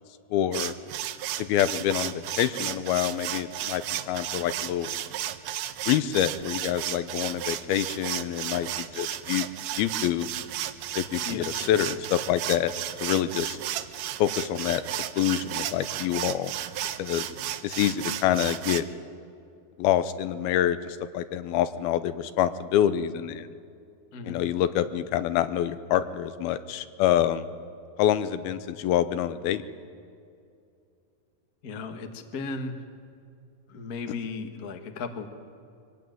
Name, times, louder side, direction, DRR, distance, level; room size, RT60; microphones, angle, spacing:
voice 1, 0.3-0.7 1.4-5.0 5.9-9.5 9.7-10.3 10.9-12.7 13.0-13.6 14.2-16.5 17.0-17.3 17.6-18.8 19.8-23.5 24.3-27.5 28.0-29.6, left 11 dB, 80° left, 12 dB, 2.6 m, -26 dB
sound 1, 0.5-18.8, right 12 dB, 75° right, 2.1 m, -34 dB
voice 2, 31.6-32.8 33.7-35.3, left 4 dB, 65° left, 5 dB, 0.9 m, -35 dB
24.0 x 17.5 x 9.3 m, 2.4 s
omnidirectional pair, 4.4 m